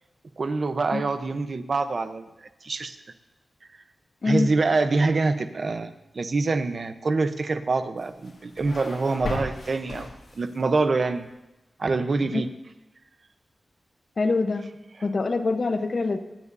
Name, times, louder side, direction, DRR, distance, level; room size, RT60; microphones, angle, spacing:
voice 1, 0.4-2.3 2.6-3.0 4.2-10.1 10.3-11.3 11.8-12.5, right 3 dB, 55° right, 9 dB, 0.8 m, -25 dB
voice 2, 4.2-4.5 12.3-12.4 14.2-14.7 15.0-16.2, left 3 dB, 50° left, 7 dB, 0.9 m, -24 dB
sound 1, 8.0-10.7, left 2 dB, 90° left, 2.7 m, -36 dB
25.5 x 9.6 x 2.7 m, 1.0 s
wide cardioid pair, 115°, 0 cm